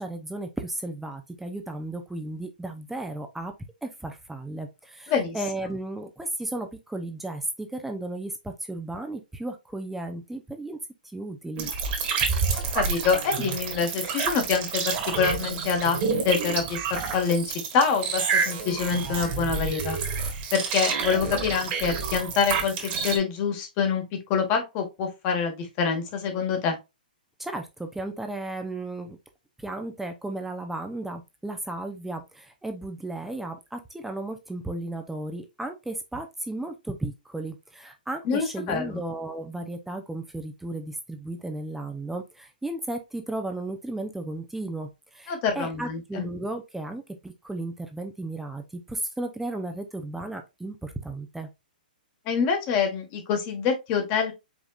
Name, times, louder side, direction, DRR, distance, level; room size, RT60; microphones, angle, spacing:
voice 1, 0.0-3.5 3.8-10.8 11.0-11.7 27.4-29.2 29.6-51.5, right 2 dB, 5° right, 0.6 m, -34 dB
sound 1, 11.6-23.2, right 5 dB, 35° right, 1.7 m, -29 dB
voice 2, 12.7-16.0 16.2-20.0 20.5-24.0 24.3-26.8 38.2-39.0 45.3-46.2 52.2-54.3, left 6 dB, 35° left, 1.5 m, -26 dB
5.2 x 3.6 x 2.4 m
hypercardioid pair, 130°, 5 cm